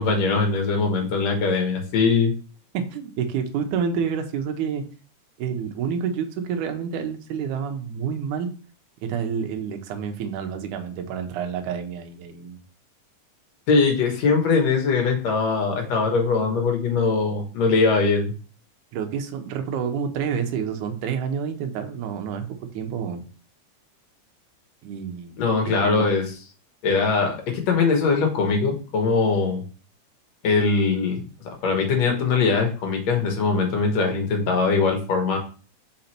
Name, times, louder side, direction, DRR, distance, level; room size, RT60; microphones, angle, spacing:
voice 1, 0.0-2.3 13.7-18.3 25.4-26.3 26.8-29.6 30.4-31.3 31.6-35.4, left 4 dB, 60° left, 2 dB, 2.4 m, -21 dB
voice 2, 2.7-4.8 5.4-8.5 9.0-12.6 18.9-23.3 24.8-25.4 25.6-26.0, right 7 dB, 80° right, 5 dB, 2.3 m, -28 dB
5.3 x 4.8 x 4.4 m, 0.37 s
omnidirectional pair, 3.5 m